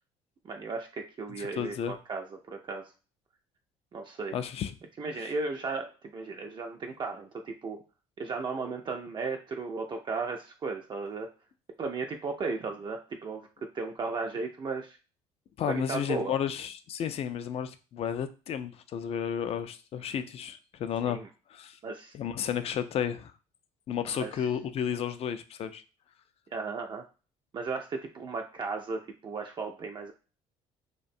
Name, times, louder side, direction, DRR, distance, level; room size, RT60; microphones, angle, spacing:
voice 1, 0.4-2.9 3.9-4.4 5.0-7.8 8.2-11.3 11.8-13.5 13.7-15.0 15.7-16.3 21.1-21.3 21.8-22.1 24.2-24.5 26.5-27.0 27.5-30.1, right 4 dB, 35° right, 3 dB, 0.4 m, -35 dB
voice 2, 1.4-1.9 4.3-4.7 5.2-5.3 15.6-21.2 21.5-21.8 22.1-23.3 23.9-25.8, left 8 dB, 45° left, 11 dB, 0.4 m, -32 dB
2.4 x 2.1 x 2.6 m, 0.33 s
supercardioid pair, 75°, 14 cm